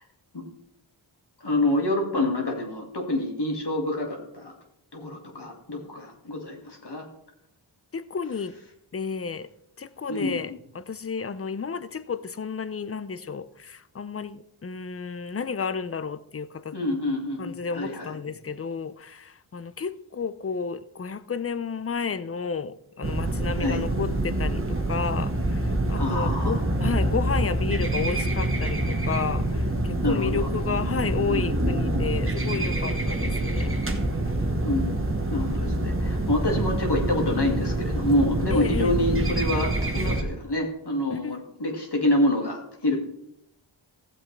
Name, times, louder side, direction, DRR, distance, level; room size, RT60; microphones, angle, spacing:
voice 1, 1.4-4.6 4.9-7.1 10.1-10.4 16.7-18.1 23.6-23.8 26.0-26.6 30.0-30.5 34.6-35.0 35.3-43.0, left 1 dB, 55° left, 1 dB, 2.2 m, -27 dB
voice 2, 7.9-8.6 8.9-9.5 9.8-16.8 17.4-33.7 38.5-39.0 41.1-41.4, left 5 dB, 30° left, 15 dB, 0.6 m, -32 dB
sound 1, 23.0-40.2, right 1 dB, 25° right, 1.3 m, -26 dB
15.0 x 7.6 x 3.3 m, 0.79 s
wide cardioid pair, 45°, 48 cm